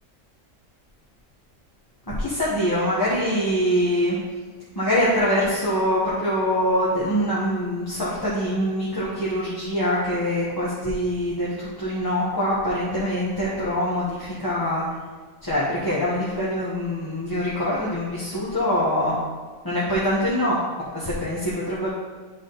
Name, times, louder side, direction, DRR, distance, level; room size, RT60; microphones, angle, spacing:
voice 1, 2.1-4.2 4.7-14.8 15.4-19.2 19.6-21.9, equal, 15° left, -9 dB, 1.1 m, -24 dB
11.0 x 3.7 x 3.9 m, 1.4 s
omnidirectional pair, 1.4 m